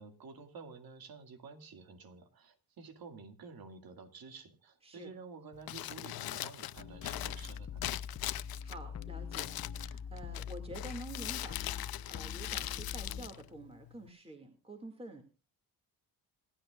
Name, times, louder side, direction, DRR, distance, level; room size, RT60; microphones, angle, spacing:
voice 1, 0.0-8.0, right 4 dB, 65° right, 7 dB, 2.3 m, -51 dB
Crumpling crinkling, 5.5-14.1, left 15 dB, 65° left, 0.6 m, -42 dB
sound 1, 6.8-13.3, left 7 dB, 40° left, 1.1 m, -43 dB
voice 2, 8.6-15.2, right 1 dB, 15° right, 3 dB, 2.2 m, -48 dB
27.0 x 9.9 x 2.4 m, 0.30 s
cardioid pair, 90°, 39 cm